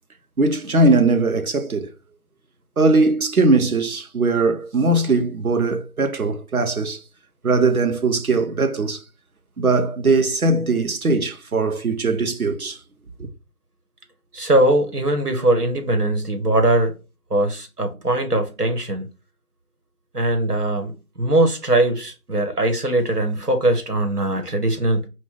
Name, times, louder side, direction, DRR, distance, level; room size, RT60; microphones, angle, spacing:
voice 1, 0.4-1.9 2.8-7.0 7.4-9.0 9.6-12.8, right 3 dB, 65° right, 1.0 m, -20 dB
voice 2, 14.3-17.0 17.3-19.1 20.1-25.1, right 1 dB, 85° right, 1.8 m, -20 dB
5.2 x 2.6 x 3.9 m
figure-of-eight pair, 165°, 45 cm